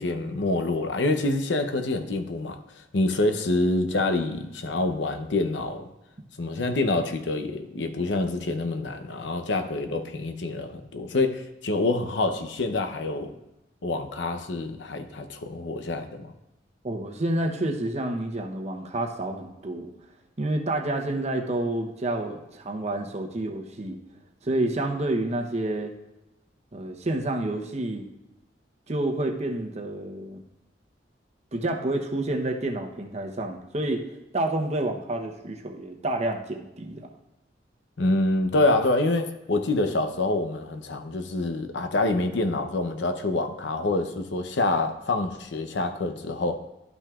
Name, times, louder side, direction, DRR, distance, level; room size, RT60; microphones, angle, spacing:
voice 1, 0.0-2.6 2.9-5.9 6.4-13.3 13.8-16.3 38.0-46.6, left 2 dB, 85° left, 8 dB, 0.7 m, -26 dB
voice 2, 16.8-19.9 20.4-24.0 24.4-25.9 26.7-28.1 28.9-30.4 31.5-34.0 34.3-37.1, right 1 dB, 40° right, 3 dB, 0.8 m, -29 dB
12.0 x 5.9 x 2.4 m, 0.94 s
head